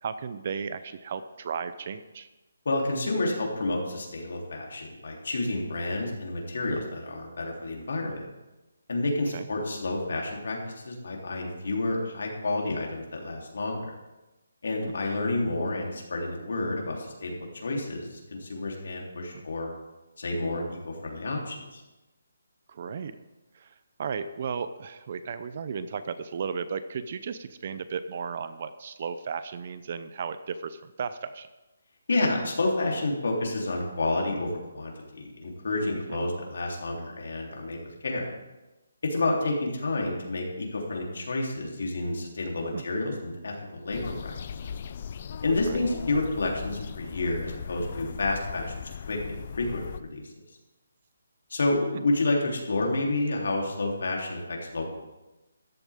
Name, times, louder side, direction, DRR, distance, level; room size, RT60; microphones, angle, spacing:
voice 1, 0.0-2.3 9.3-9.5 14.8-14.9 19.3-19.4 22.7-23.2 23.5-23.7 24.0-31.5 36.1-36.3 42.7-42.8 45.7-45.9 51.9-52.0, right 6 dB, 35° right, 12 dB, 0.6 m, -35 dB
voice 2, 2.6-8.3 8.9-13.9 14.6-19.7 20.2-21.8 32.1-38.3 39.0-44.4 45.4-50.2 51.5-54.9, left 2 dB, 65° left, -1 dB, 3.4 m, -30 dB
sound 1, 43.9-50.0, left 7 dB, 35° left, 0.4 m, -38 dB
14.0 x 12.0 x 3.6 m, 1.0 s
hypercardioid pair, 175°, 0 cm